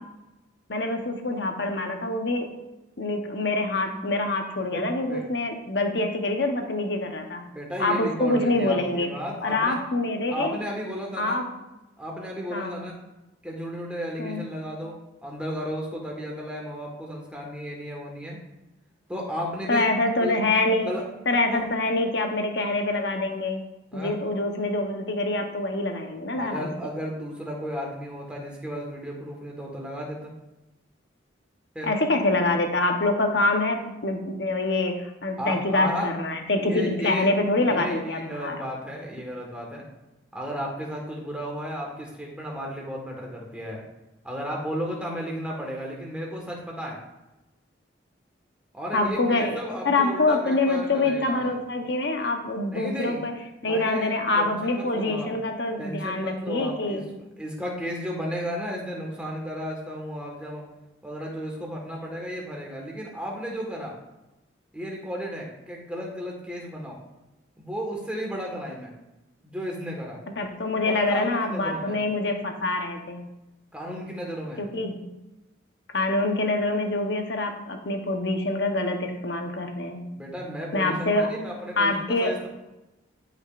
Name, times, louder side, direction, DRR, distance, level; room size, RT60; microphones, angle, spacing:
voice 1, 0.7-2.5 3.0-7.4 7.8-9.1 9.4-10.6 11.2-11.4 12.5-12.8 14.2-14.4 19.7-20.9 21.3-23.6 23.9-26.7 31.8-38.5 48.9-49.6 49.8-53.3 53.6-57.1 70.4-73.2 74.6-75.0 75.9-80.1 80.7-81.3 81.8-82.3, left 2 dB, 60° left, 4 dB, 0.9 m, -25 dB
voice 2, 4.7-5.2 7.5-9.8 10.3-11.4 12.0-12.9 13.4-18.4 19.1-19.9 20.2-20.4 20.8-21.0 21.5-21.6 23.9-24.2 26.4-30.3 31.7-31.9 35.4-36.1 36.6-37.3 37.6-39.8 40.3-43.8 44.2-47.0 48.7-51.5 52.7-53.2 53.6-55.3 55.8-57.0 57.4-60.6 61.0-63.9 64.7-67.0 67.6-68.9 69.4-70.2 70.8-72.0 73.7-74.6 80.2-82.5, equal, 5° right, -2 dB, 1.5 m, -34 dB
14.0 x 5.1 x 2.5 m, 1.0 s
head